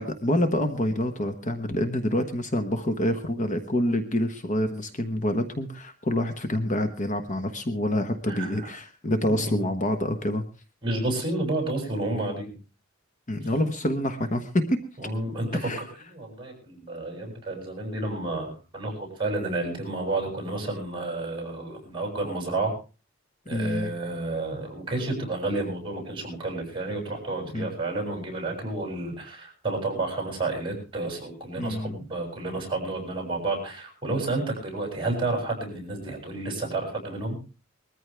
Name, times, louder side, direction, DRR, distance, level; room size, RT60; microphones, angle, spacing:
voice 1, 0.0-10.4 13.3-14.8 15.5-15.8 23.5-23.9 27.5-27.7 31.6-32.0, left 1 dB, 40° left, 7 dB, 1.2 m, -27 dB
voice 2, 8.3-8.7 9.3-9.6 10.8-12.5 15.0-15.7 16.1-22.7 23.4-37.4, right 2 dB, 25° right, 3 dB, 6.9 m, -30 dB
21.0 x 14.0 x 3.4 m, 0.34 s
head